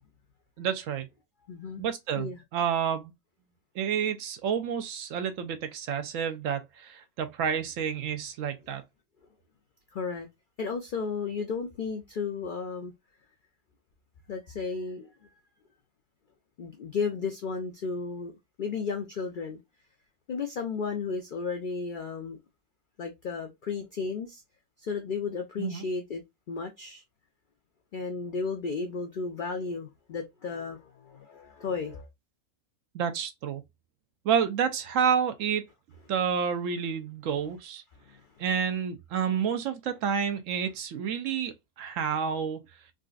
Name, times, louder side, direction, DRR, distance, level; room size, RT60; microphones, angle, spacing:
voice 1, 0.6-1.1 1.8-3.1 3.7-8.8 25.6-25.9 32.9-33.6 34.2-35.6 36.1-37.8 38.4-42.6, right 7 dB, 70° right, 0.9 m, -29 dB
voice 2, 1.5-1.8 2.2-2.4 9.9-10.3 10.6-12.9 14.3-15.3 16.6-18.3 18.6-19.6 20.3-22.4 23.0-24.4 24.8-26.2 26.5-27.0 27.9-32.1 38.1-38.2, left 5 dB, 80° left, 0.4 m, -34 dB
3.8 x 2.4 x 2.3 m
omnidirectional pair, 1.5 m